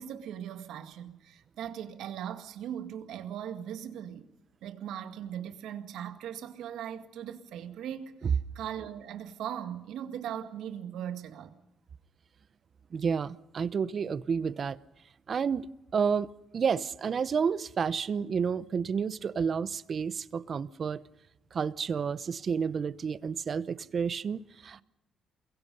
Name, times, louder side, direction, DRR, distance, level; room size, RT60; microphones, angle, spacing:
voice 1, 0.0-4.3 4.6-11.5, right 9 dB, 85° right, 2.0 m, -39 dB
voice 2, 12.9-14.8 15.3-15.7 15.9-21.0 21.5-24.8, right 6 dB, 50° right, 0.8 m, -30 dB
28.5 x 22.5 x 5.4 m
cardioid pair, 90°, 0 cm